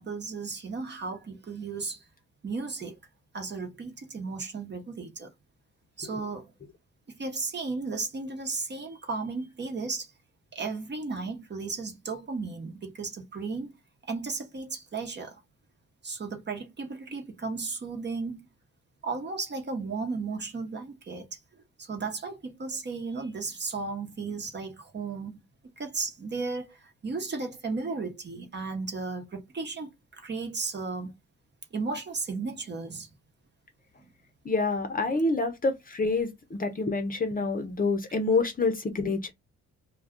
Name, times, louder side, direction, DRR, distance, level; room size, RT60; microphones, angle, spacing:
voice 1, 0.0-2.0 2.4-3.0 3.3-5.3 6.0-6.5 7.1-10.1 10.5-13.7 14.1-15.4 16.0-18.4 19.0-21.4 21.8-25.4 25.8-31.1 31.7-33.1, right 4 dB, 35° right, 1.0 m, -35 dB
voice 2, 34.4-39.3, left 3 dB, 30° left, 0.7 m, -27 dB
2.3 x 2.3 x 3.6 m
cardioid pair, 90°, 30 cm